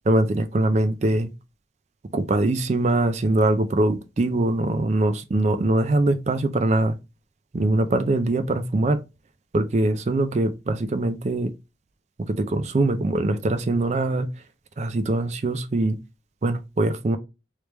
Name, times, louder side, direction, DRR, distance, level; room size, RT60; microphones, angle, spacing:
voice 1, 0.1-1.3 2.1-7.0 7.5-9.0 9.5-11.5 12.3-14.3 14.8-16.0 16.4-17.2, right 2 dB, 35° right, 0.4 m, -22 dB
3.3 x 3.2 x 3.0 m
head